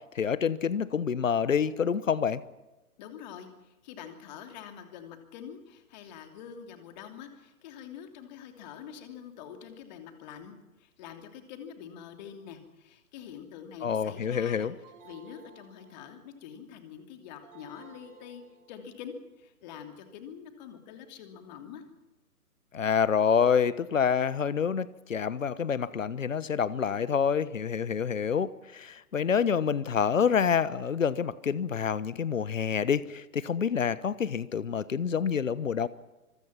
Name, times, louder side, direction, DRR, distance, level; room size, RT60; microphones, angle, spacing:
voice 1, 0.1-2.4 13.8-14.7 22.7-35.9, left 7 dB, 60° left, 1.2 m, -27 dB
voice 2, 3.0-14.7 15.0-18.4 18.7-21.8, left 8 dB, 30° left, 3.0 m, -45 dB
sound 1, 14.8-16.4 17.4-19.0, right 4 dB, 30° right, 6.3 m, -54 dB
25.0 x 23.5 x 5.8 m
figure-of-eight pair, 130°, 44 cm